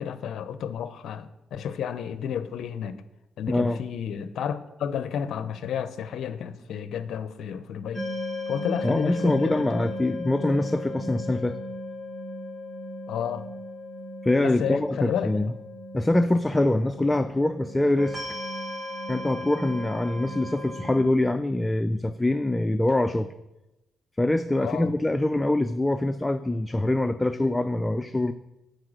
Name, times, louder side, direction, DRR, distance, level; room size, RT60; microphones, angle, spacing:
voice 1, 0.0-3.0 3.4-8.1 8.5-9.7 13.1-13.5 14.4-15.3 24.6-24.9, left 8 dB, 70° left, 0.5 m, -31 dB
voice 2, 3.5-3.8 8.8-11.6 14.2-15.5 15.9-18.2 19.1-23.3 24.2-28.3, left 1 dB, 15° left, 0.4 m, -24 dB
sound 1, 7.9-21.0, left 1 dB, 30° right, 2.5 m, -36 dB
9.5 x 4.4 x 6.3 m
cardioid pair, 75°, 0 cm